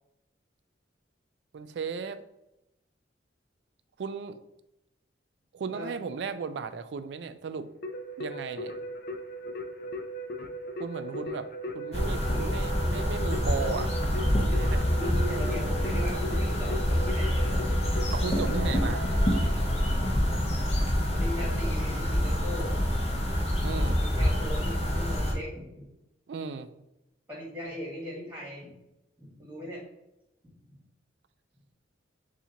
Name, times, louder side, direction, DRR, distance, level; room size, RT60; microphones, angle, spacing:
voice 1, 1.5-2.2 4.0-4.4 5.5-7.7 8.2-8.7 10.8-11.5 11.7-15.0 18.1-19.1 23.6-24.0 26.3-26.7, right 5 dB, 70° right, 11 dB, 0.3 m, -36 dB
Keyboard (musical), 7.8-20.3, equal, 55° left, 0.4 m, -38 dB
sound 1, 11.9-25.3, equal, 35° left, 0.9 m, -27 dB
voice 2, 12.3-12.7 15.0-17.6 21.1-22.8 23.9-25.8 27.3-28.7 29.2-29.8, equal, 10° right, -4 dB, 1.3 m, -39 dB
6.9 x 2.4 x 2.8 m, 0.91 s
head